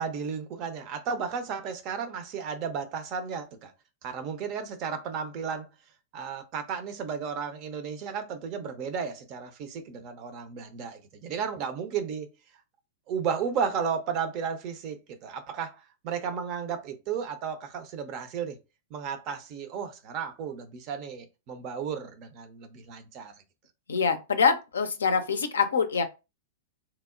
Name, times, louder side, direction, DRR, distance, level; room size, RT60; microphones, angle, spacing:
voice 1, 0.0-3.7 4.0-5.7 6.1-12.3 13.1-18.6 18.9-23.3, right 6 dB, 40° right, 0.5 m, -33 dB
voice 2, 23.9-26.0, left 5 dB, 75° left, 0.4 m, -25 dB
2.8 x 2.0 x 2.4 m
figure-of-eight pair, 100°, 0 cm